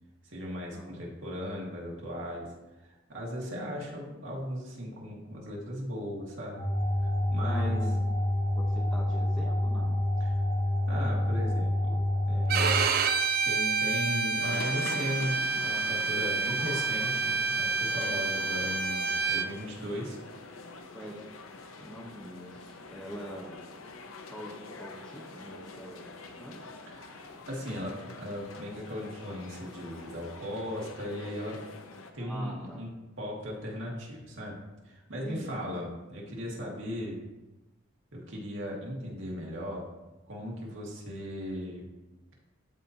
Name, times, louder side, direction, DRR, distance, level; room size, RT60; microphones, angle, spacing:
voice 1, 0.2-2.5 2.8-6.7 7.0-7.9 10.2-10.4 10.9-12.7 13.4-20.2 26.9-31.6 32.1-32.9 33.2-37.2 38.1-39.9 40.3-41.9, equal, 70° right, -3 dB, 1.9 m, -37 dB
sound 1, 6.6-12.8, left 1 dB, 45° left, 1.6 m, -28 dB
voice 2, 7.4-8.1 8.5-10.0 20.9-21.2 21.8-23.6 24.3-24.5 24.8-26.1 26.4-26.6 32.2-32.8 35.2-35.7 36.6-36.8, equal, 5° left, -2 dB, 0.9 m, -43 dB
Bowed string instrument, 12.5-19.5, right 4 dB, 45° right, 0.4 m, -28 dB
sound 2, 14.4-32.1, left 3 dB, 85° left, 0.7 m, -45 dB
13.0 x 4.3 x 2.8 m, 1.1 s
head